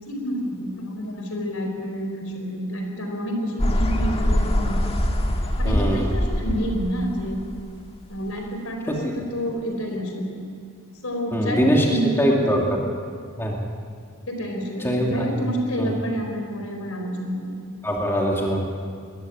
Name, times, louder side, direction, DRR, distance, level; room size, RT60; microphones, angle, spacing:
voice 1, 0.0-4.9 5.6-7.4 8.1-10.4 11.0-12.6 14.3-17.7, equal, 70° left, 3 dB, 4.3 m, -29 dB
sound 1, 3.6-8.0, equal, 25° left, 1.6 m, -23 dB
voice 2, 5.7-6.1 8.9-9.1 11.3-12.6 13.4-13.6 14.8-15.2 15.8-15.9 17.8-18.7, equal, 10° left, -1 dB, 2.4 m, -22 dB
21.5 x 15.0 x 9.3 m, 2.2 s
head